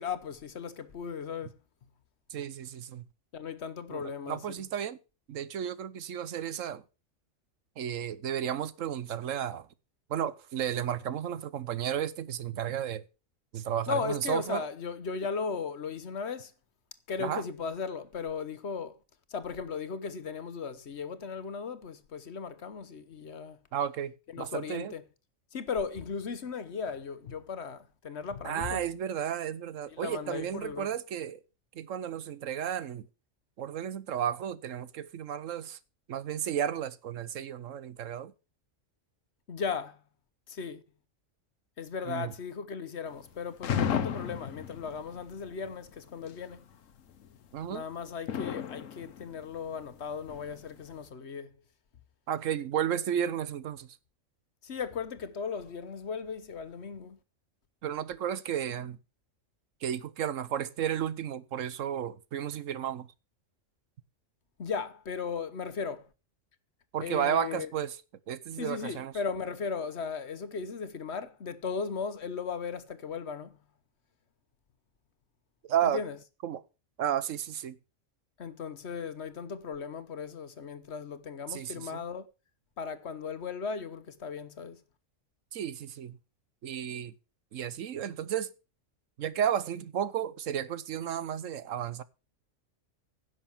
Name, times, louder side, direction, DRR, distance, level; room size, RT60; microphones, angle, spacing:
voice 1, 0.0-1.6 3.3-4.4 13.9-16.5 17.1-19.0 19.3-23.6 24.3-25.0 25.5-28.8 29.9-30.9 39.5-40.0 40.5-40.8 41.8-46.6 47.7-51.5 54.6-57.2 64.6-66.1 67.0-67.7 68.6-73.6 75.8-76.2 78.4-82.3 82.8-84.8, left 5 dB, 60° left, 1.2 m, -36 dB
voice 2, 2.3-3.0 3.9-5.0 5.3-6.8 7.8-9.7 10.1-13.0 13.5-14.6 17.2-17.4 23.7-24.9 28.4-31.4 31.7-33.1 33.6-35.8 36.1-38.3 42.1-42.3 47.5-47.8 52.3-53.9 57.8-59.0 59.8-63.1 66.9-68.0 68.3-69.1 75.7-76.0 76.4-76.6 77.0-77.8 81.5-82.0 85.5-86.2 86.6-87.1 87.5-88.5 89.2-92.0, right 9 dB, 75° right, 1.2 m, -33 dB
sound 1, 43.1-43.3 43.6-45.5 46.0-46.5 47.2-47.7 48.1-51.0, left 8 dB, 80° left, 1.3 m, -33 dB
10.5 x 6.4 x 7.2 m
omnidirectional pair, 1.3 m